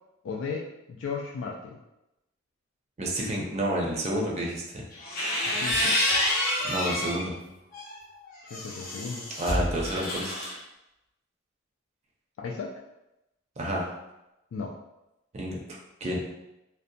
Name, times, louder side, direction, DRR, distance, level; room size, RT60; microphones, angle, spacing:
voice 1, 0.2-1.8 5.4-6.0 8.4-9.3 12.4-12.7 14.5-14.7, left 5 dB, 75° left, -1 dB, 0.3 m, -35 dB
voice 2, 3.0-4.9 6.6-7.4 9.4-10.5 13.6-13.9 15.3-15.6 16.0-16.2, right 1 dB, 35° right, -2 dB, 0.5 m, -30 dB
sound 1, 4.9-7.2 7.7-10.5, left 1 dB, 45° left, 0.7 m, -28 dB
2.6 x 2.1 x 2.6 m, 0.91 s
head